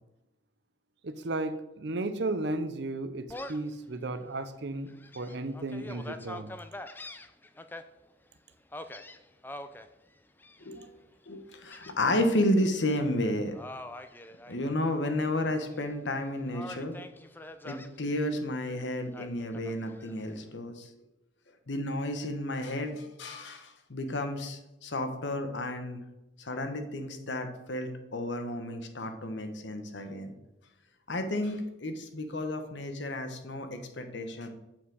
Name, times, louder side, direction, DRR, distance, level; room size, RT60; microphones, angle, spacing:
voice 1, 1.0-6.5, right 2 dB, 60° right, 11 dB, 0.7 m, -34 dB
Gull seagull, 3.3-3.7 4.2-4.3 4.9-7.8 8.7-9.9 10.4-10.9 11.7-12.4 12.7-13.0 13.5-15.1 15.4-16.2 16.5-17.9 19.1-20.1, left 1 dB, 10° left, 0.4 m, -44 dB
voice 2, 11.3-13.5 14.5-17.0 17.6-20.9 21.7-26.0 26.4-30.3 31.1-34.5, left 1 dB, 65° left, 7 dB, 1.2 m, -32 dB
7.3 x 5.8 x 6.4 m, 0.95 s
head